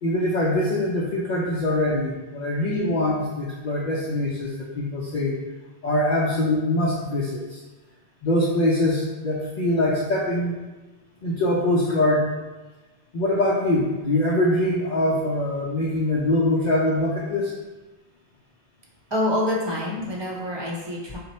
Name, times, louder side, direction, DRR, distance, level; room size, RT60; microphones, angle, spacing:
voice 1, 0.0-5.4 5.8-7.6 8.2-10.6 11.2-12.3 13.1-17.5, left 1 dB, 55° left, -4 dB, 0.6 m, -23 dB
voice 2, 19.1-21.2, left 1 dB, 30° right, -3 dB, 0.6 m, -26 dB
4.2 x 2.1 x 4.1 m, 1.2 s
omnidirectional pair, 1.1 m